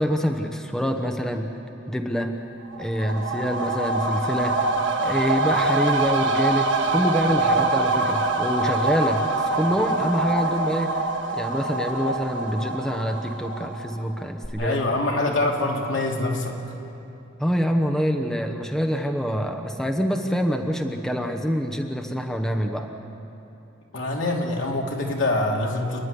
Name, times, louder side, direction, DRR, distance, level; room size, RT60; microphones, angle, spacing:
voice 1, 0.0-1.5 1.9-2.4 2.8-4.6 5.0-9.3 9.5-11.1 11.3-14.8 17.4-22.9, equal, 5° left, 3 dB, 1.0 m, -25 dB
sound 1, 2.7-14.1 14.4-14.5, right 2 dB, 65° right, 1.6 m, -24 dB
voice 2, 14.6-16.5 23.9-26.0, left 2 dB, 70° left, 0 dB, 3.0 m, -24 dB
29.5 x 11.0 x 9.9 m, 2.9 s
head